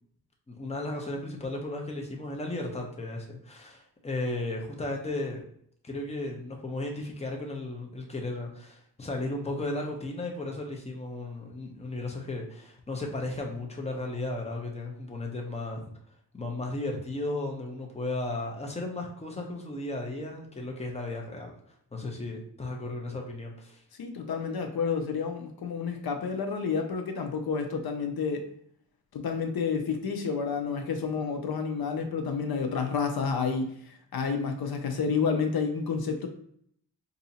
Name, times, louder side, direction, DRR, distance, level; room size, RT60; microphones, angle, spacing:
voice 1, 0.5-5.4 5.8-15.9 16.3-21.5 21.9-23.8, left 2 dB, 15° left, 1 dB, 0.8 m, -35 dB
voice 2, 24.0-28.4 29.1-36.3, left 5 dB, 65° left, 5 dB, 0.6 m, -30 dB
2.7 x 2.7 x 4.1 m, 0.66 s
wide cardioid pair, 100°, 39 cm